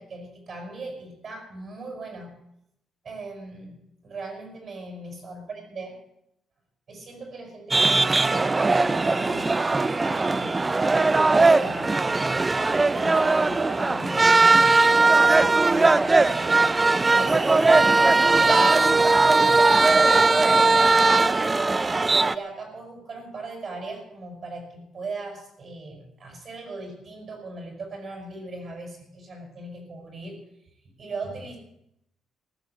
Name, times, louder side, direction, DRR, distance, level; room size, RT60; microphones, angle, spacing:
voice 1, 0.0-2.3 3.0-3.8 4.0-6.0 6.9-9.9 10.3-10.7 11.3-12.1 12.9-16.6 17.1-18.9 19.8-21.4 22.0-30.4 31.0-31.6, right 3 dB, 50° right, 3 dB, 5.8 m, -38 dB
sound 1, 7.7-22.3, right 3 dB, 25° right, 0.5 m, -19 dB
15.0 x 10.5 x 8.1 m, 0.79 s
cardioid pair, 90°, 0 cm